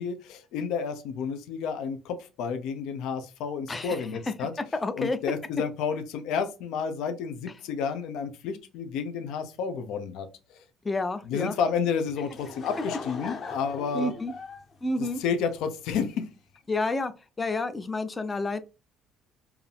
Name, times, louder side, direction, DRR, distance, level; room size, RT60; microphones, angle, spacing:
voice 1, 0.0-4.5 4.9-10.6 11.2-14.1 15.0-16.3, left 6 dB, 75° left, 0.8 m, -31 dB
voice 2, 3.7-4.3 4.8-5.2 10.8-11.6 13.9-14.3 14.8-15.2 16.7-17.1 17.4-18.6, left 2 dB, 15° left, 0.4 m, -29 dB
Laughter / Crowd, 12.0-15.8, left 4 dB, 30° left, 0.8 m, -39 dB
4.8 x 2.7 x 3.4 m
cardioid pair, 175°, 0 cm